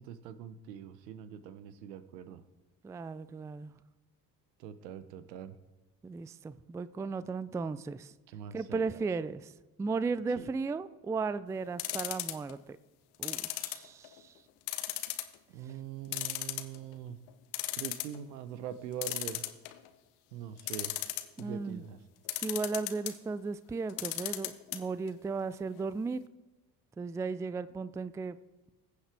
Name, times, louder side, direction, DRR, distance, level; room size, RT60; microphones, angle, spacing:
voice 1, 0.0-2.4 4.6-5.6 8.3-9.1 10.3-10.5 15.5-17.2 17.7-19.4 20.3-20.9 21.4-22.0, right 9 dB, 80° right, 14 dB, 1.0 m, -43 dB
voice 2, 2.8-3.7 6.0-8.1 8.5-9.5 9.8-12.8 13.2-14.3 21.4-21.8 22.4-26.2 27.0-28.4, right 4 dB, 5° right, 16 dB, 0.3 m, -35 dB
sound 1, 11.8-12.5 13.2-14.2 14.7-15.3 15.7-15.8 16.1-16.9 17.3-17.4 17.5-18.2 19.0-19.9 20.6-21.4 22.3-23.1 23.9-24.8 25.1-25.2 25.4-25.5, left 17 dB, 70° left, 1.1 m, -35 dB
21.0 x 8.2 x 3.4 m, 1.1 s
hypercardioid pair, 55°, 49 cm